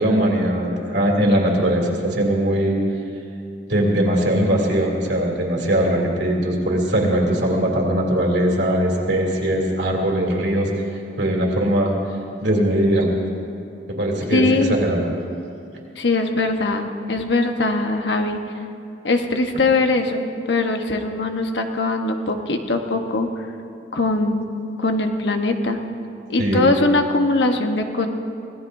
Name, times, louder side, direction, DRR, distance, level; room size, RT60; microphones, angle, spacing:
voice 1, 0.0-2.8 3.7-10.7 11.2-11.9 12.4-13.1 13.9-15.0 26.4-26.6, right 1 dB, 75° right, -1 dB, 2.9 m, -20 dB
voice 2, 14.3-14.8 16.0-18.4 19.0-23.3 23.9-24.5 24.8-25.8 26.3-28.1, left 2 dB, 75° left, 4 dB, 1.1 m, -21 dB
25.5 x 17.5 x 2.7 m, 2.7 s
head